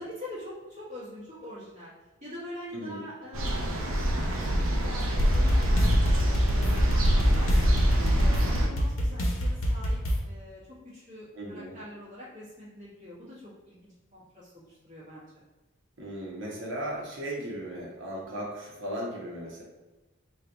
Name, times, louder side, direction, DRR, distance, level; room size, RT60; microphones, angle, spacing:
voice 1, 0.0-1.9 2.2-7.5 7.9-10.0 10.2-15.3, left 1 dB, 35° right, -9 dB, 1.4 m, -44 dB
sound 1, 3.3-8.7, equal, 80° right, 0.6 m, -25 dB
sound 2, 5.2-10.2, equal, 80° left, 0.7 m, -26 dB
voice 2, 11.3-11.7 16.0-19.6, right 1 dB, 60° right, -4 dB, 1.1 m, -36 dB
3.2 x 2.4 x 3.9 m, 1.1 s
head